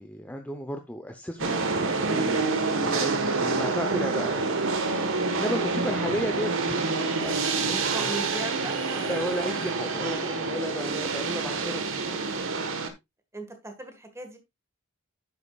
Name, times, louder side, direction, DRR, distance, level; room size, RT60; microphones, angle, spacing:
voice 1, 0.0-4.6 5.0-6.9 7.2-8.1 9.1-12.2, equal, 5° left, 0.7 m, -34 dB
sound 1, 1.4-12.9, right 3 dB, 65° right, 1.4 m, -27 dB
voice 2, 7.6-9.1 10.2-10.4 13.3-14.4, right 1 dB, 15° right, 1.6 m, -38 dB
9.8 x 8.3 x 2.4 m
head